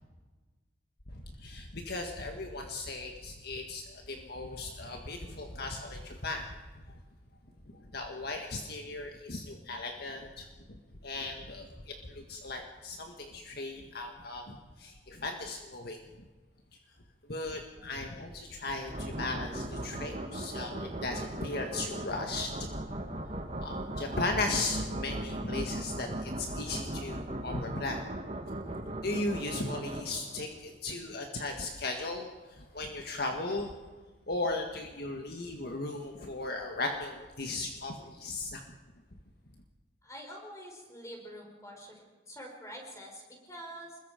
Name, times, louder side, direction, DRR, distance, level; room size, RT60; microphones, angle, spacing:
voice 1, 1.1-6.5 7.7-16.0 17.3-22.7 23.6-28.0 29.0-33.7 34.3-38.6, left 2 dB, 60° left, 3 dB, 1.7 m, -37 dB
sound 1, 18.9-30.5, right 1 dB, 40° right, 2.2 m, -38 dB
voice 2, 40.0-42.0 42.3-44.0, equal, 15° left, 0 dB, 5.3 m, -46 dB
27.0 x 21.5 x 5.2 m, 1.3 s
head